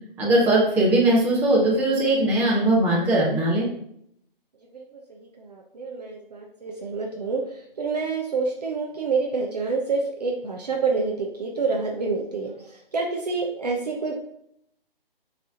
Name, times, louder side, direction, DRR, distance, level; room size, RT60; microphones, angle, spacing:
voice 1, 0.2-3.7, right 1 dB, 10° right, -6 dB, 1.2 m, -20 dB
voice 2, 5.2-14.1, right 4 dB, 45° right, 0 dB, 0.8 m, -28 dB
7.1 x 3.4 x 3.9 m, 0.71 s
figure-of-eight pair, 150°, 29 cm